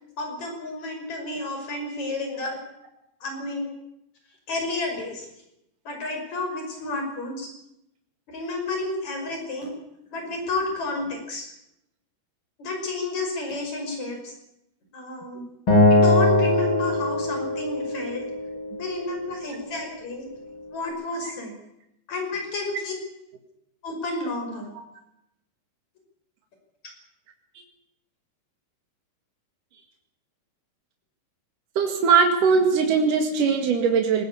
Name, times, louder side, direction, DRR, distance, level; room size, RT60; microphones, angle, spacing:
voice 1, 0.2-2.6 3.2-3.7 4.5-5.3 5.9-7.5 8.3-9.7 10.1-11.5 12.6-14.3 14.9-15.4 15.9-18.2 18.8-20.3 20.7-21.6 22.1-22.9 23.8-24.7, left 2 dB, 60° left, 3 dB, 6.9 m, -31 dB
Acoustic guitar, 15.7-18.9, left 1 dB, 35° left, 8.5 m, -21 dB
voice 2, 31.8-34.2, right 5 dB, 80° right, 3 dB, 3.7 m, -20 dB
19.5 x 19.5 x 8.6 m, 0.82 s
omnidirectional pair, 3.7 m